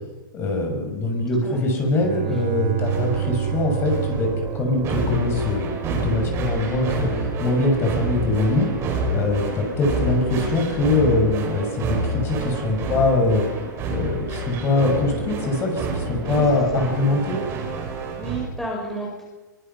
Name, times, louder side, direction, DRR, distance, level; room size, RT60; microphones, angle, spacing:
voice 1, 0.3-4.3 4.5-8.7 9.1-13.4 13.9-17.4, left 2 dB, 20° left, 2 dB, 6.2 m, -23 dB
Bowed string instrument, 1.8-5.6, right 13 dB, 45° right, 3.9 m, -29 dB
sound 1, 2.9-18.5, right 2 dB, 25° right, 6.2 m, -28 dB
voice 2, 18.2-19.2, right 1 dB, 5° left, -3 dB, 5.7 m, -32 dB
24.0 x 24.0 x 5.6 m, 1.2 s
hypercardioid pair, 155°, 11 cm